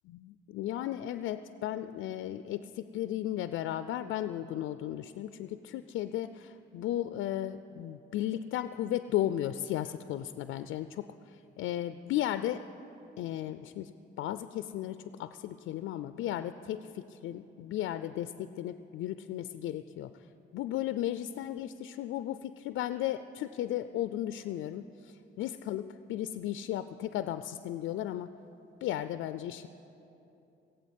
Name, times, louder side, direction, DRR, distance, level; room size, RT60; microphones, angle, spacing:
voice 1, 0.1-12.6 13.2-20.1 20.5-28.3 28.8-29.7, left 12 dB, 80° left, 11 dB, 0.4 m, -35 dB
16.0 x 7.9 x 8.2 m, 2.9 s
cardioid pair, 90°, 20 cm